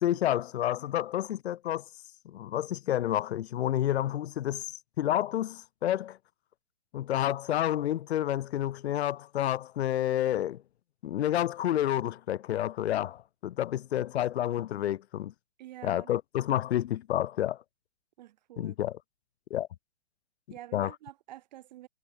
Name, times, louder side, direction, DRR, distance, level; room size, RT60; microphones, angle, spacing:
voice 1, 0.0-1.8 2.2-6.2 6.9-10.6 11.0-15.3 15.8-17.6 18.6-19.0 19.5-19.7 20.7-20.9, left 12 dB, 65° left, 0.6 m, -29 dB
voice 2, 15.6-16.1 18.2-18.8 20.5-21.9, right 14 dB, 40° right, 0.5 m, -47 dB
hypercardioid pair, 130°, 35 cm